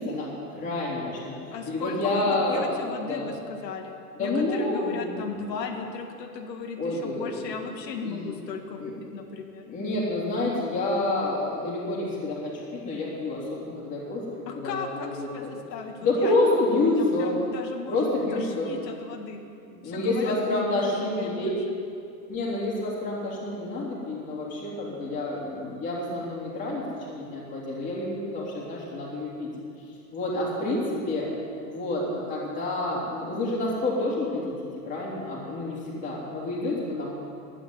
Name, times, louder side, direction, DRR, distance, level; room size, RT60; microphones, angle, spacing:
voice 1, 0.0-1.4 1.7-3.3 4.2-5.4 6.8-7.3 8.0-8.4 8.8-9.0 9.7-15.5 16.0-17.3 17.9-18.7 19.6-21.5 22.3-29.5 30.1-31.3 31.7-37.1, left 2 dB, 15° left, -5 dB, 3.1 m, -28 dB
voice 2, 1.5-3.9 4.2-9.7 14.5-18.0 18.3-19.4 19.8-20.9 21.2-21.6, left 5 dB, 75° left, 2 dB, 1.8 m, -36 dB
12.0 x 9.4 x 9.5 m, 2.5 s
supercardioid pair, 160°, 50 cm